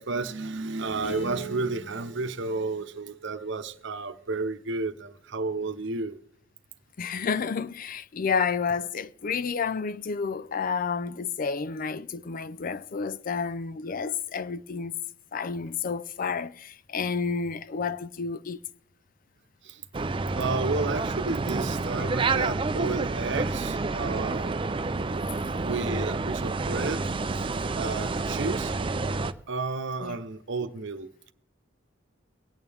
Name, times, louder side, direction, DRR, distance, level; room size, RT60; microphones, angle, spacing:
voice 1, 0.0-6.2 19.6-19.8 20.4-24.7 25.6-27.1 27.3-27.4 27.8-28.7 29.5-31.3, right 3 dB, 65° right, 0.9 m, -32 dB
Piano, 1.0-4.3, right 7 dB, 30° left, 1.5 m, -44 dB
voice 2, 7.0-15.0 15.3-18.6 30.0-30.2, left 5 dB, 45° left, 0.4 m, -30 dB
sound 1, 19.9-29.3, right 3 dB, 25° right, 0.5 m, -29 dB
23.5 x 8.9 x 3.5 m
head